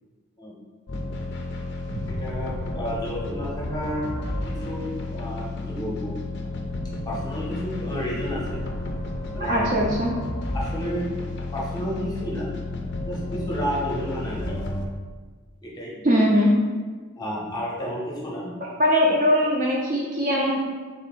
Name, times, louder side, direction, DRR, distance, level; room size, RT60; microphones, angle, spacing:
sound 1, 0.9-14.9, left 2 dB, 50° left, 0.4 m, -32 dB
voice 1, 2.0-4.1 4.6-6.1 7.1-8.7 9.3-9.7 10.5-11.1 11.5-12.5 13.1-14.6 15.6-16.0 17.2-18.5, equal, 20° left, -5 dB, 0.7 m, -31 dB
voice 2, 9.5-10.1 16.0-16.5 18.8-20.6, equal, 40° right, -3 dB, 0.5 m, -20 dB
3.6 x 2.6 x 4.2 m, 1.4 s
head